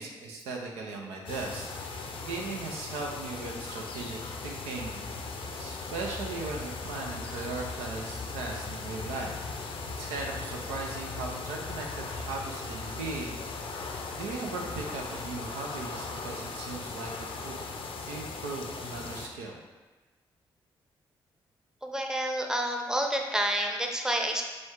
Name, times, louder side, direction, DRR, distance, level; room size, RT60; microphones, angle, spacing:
voice 1, 0.0-9.3 9.6-13.7 14.1-17.6 18.1-19.6, right 3 dB, 90° right, 0 dB, 0.5 m, -38 dB
sound 1, 1.3-19.3, left 4 dB, 60° left, 0.5 m, -38 dB
voice 2, 21.8-24.4, right 1 dB, 5° right, 2 dB, 0.7 m, -29 dB
5.0 x 2.3 x 3.6 m, 1.2 s
hypercardioid pair, 45°, 10 cm